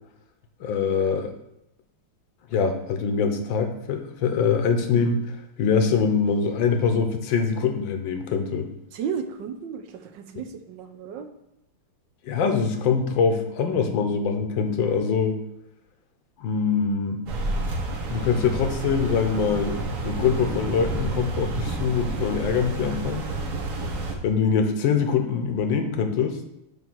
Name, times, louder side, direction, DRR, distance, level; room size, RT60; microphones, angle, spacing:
voice 1, 0.6-1.3 2.5-8.7 12.2-15.4 16.4-17.2 18.1-23.3 24.2-26.4, left 6 dB, 70° left, 6 dB, 1.5 m, -24 dB
voice 2, 8.9-11.3, right 7 dB, 70° right, 7 dB, 1.2 m, -33 dB
sound 1, 17.3-24.1, right 2 dB, 50° right, 1.5 m, -30 dB
9.1 x 3.3 x 6.1 m, 0.84 s
omnidirectional pair, 2.4 m